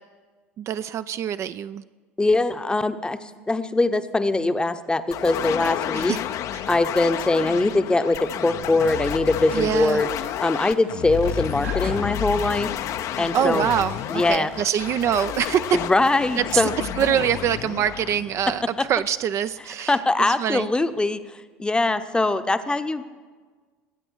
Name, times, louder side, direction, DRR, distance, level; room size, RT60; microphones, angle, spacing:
voice 1, 0.6-1.8 5.9-6.2 9.5-10.0 13.3-15.6 16.3-16.7 17.0-18.6 18.9-20.7, right 9 dB, 45° right, 12 dB, 0.4 m, -24 dB
voice 2, 2.2-6.2 6.7-10.1 10.4-12.7 13.2-13.7 14.1-14.5 15.7-16.7 18.8-18.9 19.9-21.2 21.6-23.0, left 2 dB, 15° left, 11 dB, 0.8 m, -22 dB
sound 1, 5.1-19.0, left 11 dB, 50° left, 0.6 m, -30 dB
sound 2, 8.8-16.4, right 5 dB, 90° right, 2.0 m, -47 dB
22.0 x 8.8 x 4.7 m, 1.4 s
hypercardioid pair, 75°, 7 cm